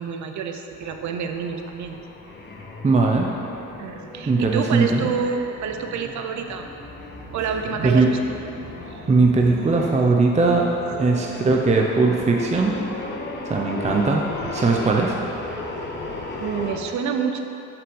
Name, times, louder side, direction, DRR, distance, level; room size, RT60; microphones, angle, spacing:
voice 1, 0.0-2.0 3.8-10.1 10.9-11.1 13.9-14.0 14.6-15.1 15.9-17.4, right 6 dB, 70° right, 6 dB, 0.7 m, -30 dB
sound 1, 0.8-16.8, left 2 dB, 35° left, 1.1 m, -36 dB
voice 2, 2.8-3.3 4.3-5.0 7.8-8.1 9.1-10.7 11.0-12.7 13.5-14.2 14.5-15.1, right 3 dB, 25° right, 0 dB, 0.6 m, -19 dB
6.6 x 6.0 x 5.4 m, 2.9 s
cardioid pair, 90°, 30 cm